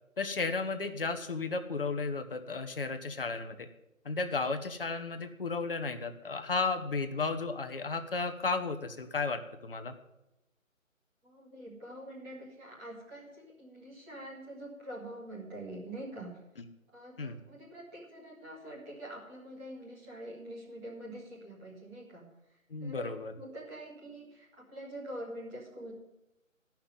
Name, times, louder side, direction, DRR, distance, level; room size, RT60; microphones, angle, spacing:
voice 1, 0.2-3.7 4.0-9.9 17.2-17.4 22.7-23.3, left 4 dB, 45° left, 7 dB, 1.1 m, -34 dB
voice 2, 11.2-16.4 16.9-23.1 23.4-25.9, right 1 dB, 10° right, -6 dB, 1.8 m, -45 dB
12.5 x 5.9 x 8.9 m, 0.91 s
figure-of-eight pair, 160°, 41 cm